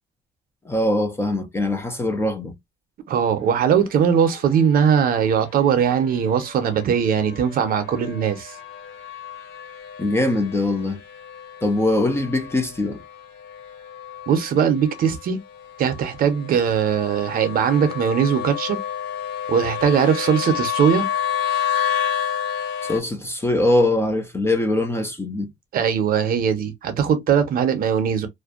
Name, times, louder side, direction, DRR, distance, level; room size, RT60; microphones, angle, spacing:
voice 1, 0.7-2.6 10.0-11.0 11.6-13.0 22.8-25.5, left 2 dB, 15° left, 0.4 m, -22 dB
voice 2, 3.1-8.5 14.3-15.4 15.8-18.8 19.5-21.1 25.7-28.3, right 7 dB, 55° right, 0.6 m, -20 dB
sound 1, 3.3-23.0, left 9 dB, 90° left, 0.7 m, -31 dB
2.4 x 2.1 x 2.4 m
cardioid pair, 145°, 18 cm